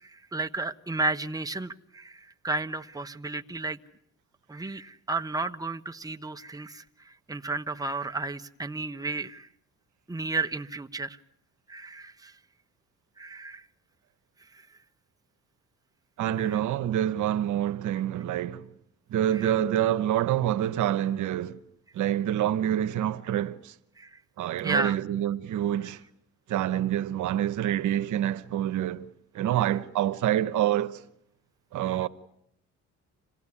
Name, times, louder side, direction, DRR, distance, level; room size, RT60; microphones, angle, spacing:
voice 1, 0.0-3.8 4.5-9.5 10.1-11.2 11.7-12.3 13.2-13.7 14.5-14.6 16.4-16.6 19.3-19.5 24.0-24.2 24.6-25.0 31.9-32.1, right 3 dB, 10° right, 1.2 m, -33 dB
voice 2, 16.2-18.7 19.1-21.6 21.9-23.7 24.4-26.0 26.5-29.1 29.3-31.0 31.7-32.1, right 11 dB, 80° right, 1.1 m, -27 dB
27.0 x 18.0 x 9.8 m
cardioid pair, 90°, 30 cm